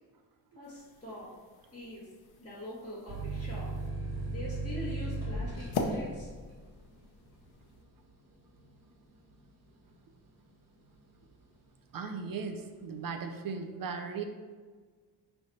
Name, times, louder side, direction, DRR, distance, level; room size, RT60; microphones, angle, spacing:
voice 1, 0.5-1.3 1.7-2.1 2.4-3.7 4.3-6.3, left 1 dB, 15° left, -10 dB, 1.7 m, -43 dB
sound 1, 0.6-7.8, left 3 dB, 70° left, 0.9 m, -42 dB
sound 2, 3.1-10.4 10.8-11.5, right 2 dB, 40° right, 2.2 m, -38 dB
voice 2, 11.9-14.2, right 5 dB, 55° right, 6 dB, 0.6 m, -37 dB
10.0 x 3.4 x 4.1 m, 1.5 s
wide cardioid pair, 180°, 41 cm